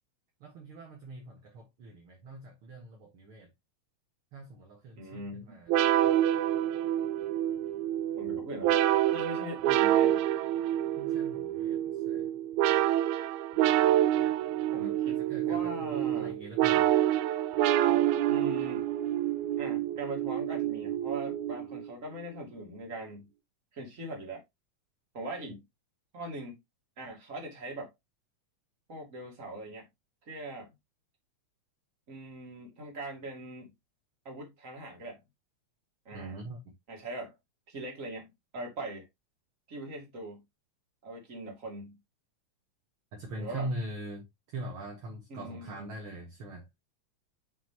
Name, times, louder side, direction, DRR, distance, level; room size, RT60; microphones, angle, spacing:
voice 1, 0.4-3.5 4.3-6.1 11.0-12.4 14.8-16.9 36.1-36.6 43.1-46.7, right 1 dB, 55° right, 2.1 m, -42 dB
voice 2, 5.0-5.6 8.1-8.8 9.1-10.2 14.7-16.4 18.3-18.9 19.6-23.3 23.7-24.4 25.1-25.6 26.1-26.6 27.0-27.9 28.9-29.9 30.2-30.8 32.1-33.7 34.2-35.2 36.0-36.4 36.9-37.4 37.7-39.1 39.7-40.4 41.0-41.9 43.3-43.7 45.3-45.9, right 1 dB, 30° right, 2.7 m, -41 dB
sound 1, 5.7-21.9, right 12 dB, 90° right, 2.0 m, -27 dB
7.4 x 5.7 x 2.9 m
omnidirectional pair, 3.3 m